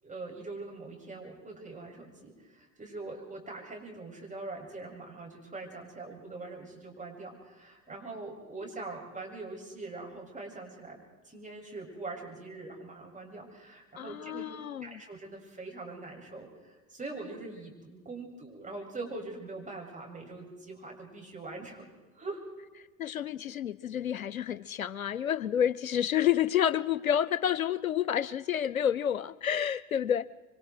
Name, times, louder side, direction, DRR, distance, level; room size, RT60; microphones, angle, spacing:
voice 1, 0.0-11.0 11.2-14.5 14.8-22.4, right 3 dB, 20° right, 0 dB, 7.9 m, -43 dB
voice 2, 14.0-15.0 23.0-30.3, left 9 dB, 90° left, 18 dB, 0.7 m, -29 dB
27.5 x 24.5 x 4.8 m, 1.2 s
figure-of-eight pair, 65°, 40 cm